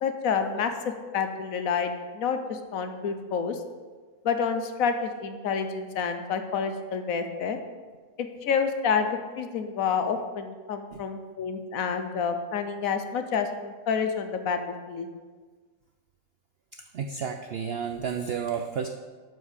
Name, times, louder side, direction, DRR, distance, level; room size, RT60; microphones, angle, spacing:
voice 1, 0.0-3.6 4.2-7.6 8.2-14.6 14.9-15.1, left 6 dB, 70° left, 7 dB, 1.1 m, -28 dB
voice 2, 16.9-18.9, right 7 dB, 90° right, 6 dB, 0.5 m, -31 dB
12.0 x 4.6 x 5.0 m, 1.5 s
omnidirectional pair, 1.6 m